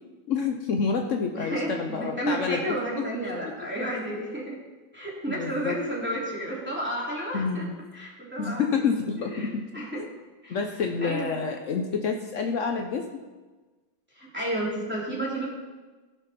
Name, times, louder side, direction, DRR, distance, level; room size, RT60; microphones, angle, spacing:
voice 1, 0.3-2.8 5.3-5.8 7.3-7.7 8.4-9.7 10.0-10.1 10.5-13.1, left 5 dB, 80° left, 4 dB, 0.7 m, -28 dB
voice 2, 1.4-4.6 4.9-7.7 7.9-8.9 9.2-10.0 10.4-10.6 11.0-11.4 14.1-15.5, right 1 dB, 5° right, -6 dB, 2.8 m, -32 dB
17.0 x 5.9 x 4.2 m, 1.3 s
omnidirectional pair, 2.2 m